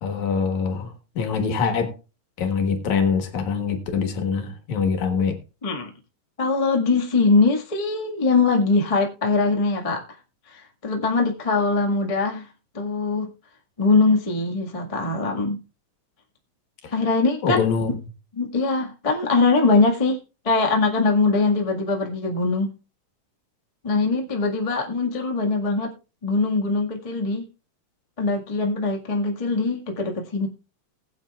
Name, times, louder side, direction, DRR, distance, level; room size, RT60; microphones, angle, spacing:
voice 1, 0.0-1.9 2.4-5.4 16.8-16.9 17.4-17.9, left 5 dB, 60° left, 2.6 m, -24 dB
voice 2, 6.4-10.0 10.5-12.5 12.7-13.3 13.8-15.6 16.9-17.7 18.4-20.2 20.4-22.7 23.8-25.9 26.2-27.4 28.2-30.5, left 3 dB, 45° left, 0.4 m, -22 dB
20.0 x 8.5 x 2.4 m
omnidirectional pair, 4.0 m